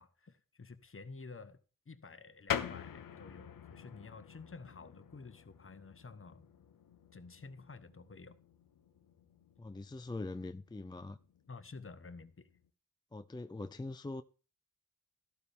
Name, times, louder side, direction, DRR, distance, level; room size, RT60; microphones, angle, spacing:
voice 1, 0.0-1.6 1.9-6.5 7.1-8.4 11.5-12.5, left 4 dB, 40° left, 1.2 m, -51 dB
sound 1, 2.5-12.7, left 9 dB, 85° left, 0.8 m, -46 dB
voice 2, 9.6-11.2 13.1-14.2, left 2 dB, 15° left, 0.5 m, -42 dB
13.5 x 12.0 x 3.6 m
cardioid pair, 45°, 33 cm